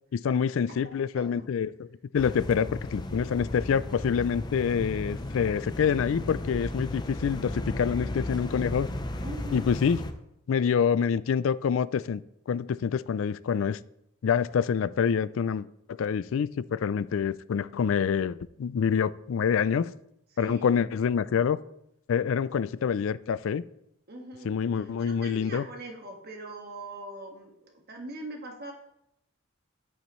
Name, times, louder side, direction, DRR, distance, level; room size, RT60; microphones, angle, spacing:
voice 1, 0.1-1.7 2.1-8.9 9.5-10.0 10.5-12.2 12.5-13.8 14.2-15.7 16.0-19.9 20.4-21.6 22.1-23.6 24.5-25.6, left 7 dB, 65° left, 0.3 m, -26 dB
voice 2, 0.7-1.5 9.2-9.7 20.3-20.8 24.1-28.7, right 1 dB, 50° right, 1.7 m, -42 dB
sound 1, 2.1-10.1, left 1 dB, 20° left, 0.6 m, -35 dB
9.9 x 8.8 x 3.1 m
head